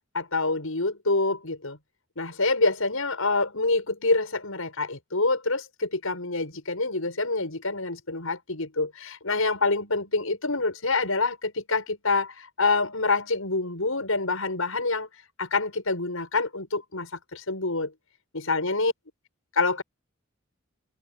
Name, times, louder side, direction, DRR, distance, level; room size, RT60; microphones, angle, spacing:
voice 1, 0.1-1.8 2.2-15.1 15.4-17.9 18.3-18.9 19.5-19.8, left 3 dB, 85° left, 6.3 m, -26 dB
head